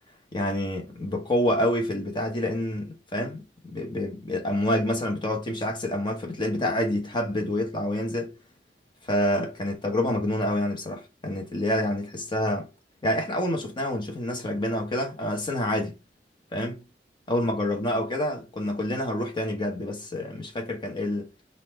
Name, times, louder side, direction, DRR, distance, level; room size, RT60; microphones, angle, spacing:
voice 1, 0.3-8.4 9.0-12.7 13.0-15.9 16.5-16.8 17.3-21.3, left 1 dB, 25° left, 1.1 m, -27 dB
4.1 x 2.6 x 4.4 m
head